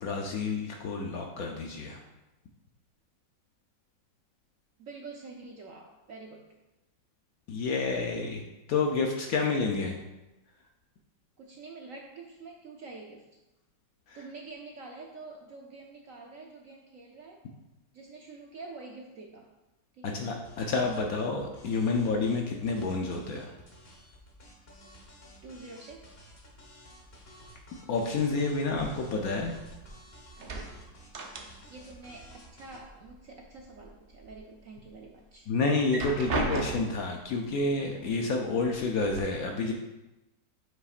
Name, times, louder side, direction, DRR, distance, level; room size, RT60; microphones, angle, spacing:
voice 1, 0.0-2.0 7.5-8.4 8.7-10.0 14.1-14.2 20.0-23.5 27.9-29.5 35.5-39.7, left 3 dB, 65° left, 2 dB, 0.9 m, -29 dB
voice 2, 4.8-6.5 11.4-13.3 14.1-17.4 17.9-19.5 19.9-20.2 25.4-26.1 30.8-30.9 31.7-35.5, right 3 dB, 65° right, 1 dB, 0.8 m, -46 dB
sound 1, 20.4-32.8, equal, 35° left, 1.3 m, -53 dB
sound 2, 28.7-30.0 30.3-31.9 32.2-33.2 33.6-34.4 34.8-34.9 35.7-37.1 38.1-38.2 38.6-39.2, right 3 dB, 85° right, 0.5 m, -36 dB
7.8 x 5.8 x 2.4 m, 1.0 s
omnidirectional pair, 2.0 m